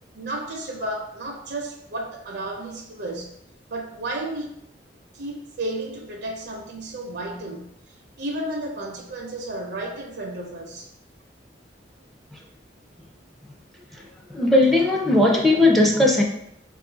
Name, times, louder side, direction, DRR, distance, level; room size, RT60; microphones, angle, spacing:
voice 1, 0.1-3.3 3.7-4.5 5.1-7.6 8.2-10.9 15.3-15.6, right 1 dB, 65° right, 1 dB, 0.5 m, -32 dB
voice 2, 14.3-16.2, left 2 dB, ahead, 0 dB, 0.4 m, -17 dB
4.0 x 2.4 x 3.8 m, 0.76 s
head